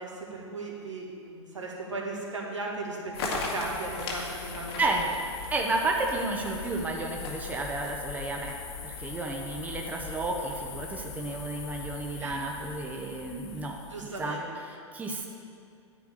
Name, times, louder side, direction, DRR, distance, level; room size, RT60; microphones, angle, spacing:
voice 1, 0.0-3.0 3.2-4.9 12.2-12.3 13.9-14.4, right 2 dB, 80° right, -2 dB, 2.1 m, -37 dB
sound 1, 3.1-14.3, left 4 dB, 55° left, 1.9 m, -39 dB
voice 2, 4.8-5.1 5.5-8.6 8.8-15.3, right 2 dB, 10° right, 1 dB, 1.0 m, -32 dB
10.0 x 4.9 x 8.2 m, 2.5 s
figure-of-eight pair, 100°, 16 cm